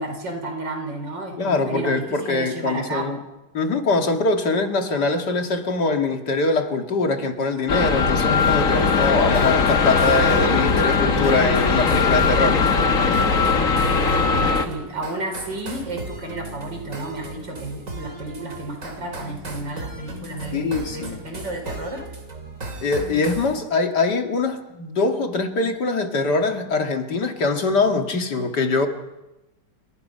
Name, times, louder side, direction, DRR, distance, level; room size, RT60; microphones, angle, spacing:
voice 1, 0.0-3.2 13.8-22.0, right 2 dB, 80° right, 4 dB, 5.5 m, -32 dB
voice 2, 1.4-3.2 3.5-12.8 20.5-21.2 22.8-28.9, left 3 dB, 65° left, 4 dB, 2.6 m, -23 dB
sound 1, 7.7-14.7, left 4 dB, 45° left, 1.9 m, -19 dB
sound 2, 8.4-23.6, right 2 dB, 45° right, 3.3 m, -37 dB
28.0 x 23.0 x 5.6 m, 0.99 s
omnidirectional pair, 2.0 m